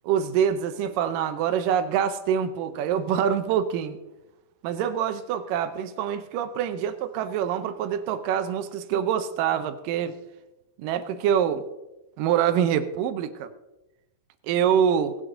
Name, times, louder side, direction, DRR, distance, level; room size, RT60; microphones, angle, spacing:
voice 1, 0.0-4.0 4.6-10.1 10.8-11.6 12.2-13.5 14.4-15.2, right 8 dB, 85° right, 10 dB, 2.4 m, -25 dB
21.0 x 8.2 x 3.7 m, 0.99 s
omnidirectional pair, 3.8 m